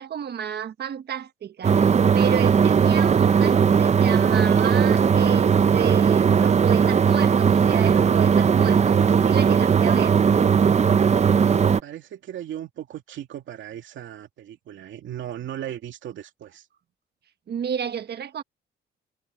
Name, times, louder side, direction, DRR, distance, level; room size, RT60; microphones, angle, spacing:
voice 1, 0.0-10.2 17.5-18.4, right 8 dB, 55° right, 1.4 m, -31 dB
sound 1, 1.6-11.8, right 6 dB, 35° right, 0.7 m, -18 dB
voice 2, 11.5-16.7, right 11 dB, 75° right, 2.5 m, -37 dB
cardioid pair, 90°, 20 cm